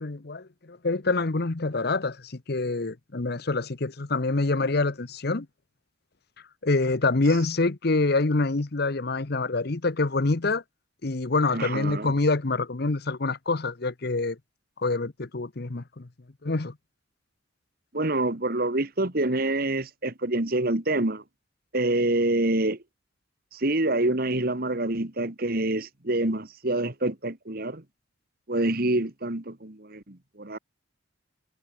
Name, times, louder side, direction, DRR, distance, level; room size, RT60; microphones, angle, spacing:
voice 1, 0.0-5.5 6.6-10.6 11.0-14.4 14.8-16.1 16.4-16.7, left 3 dB, 55° left, 0.9 m, -26 dB
voice 2, 11.5-12.1 17.9-21.2 21.7-22.8 23.5-27.8 28.5-30.6, right 2 dB, 50° right, 2.0 m, -26 dB
head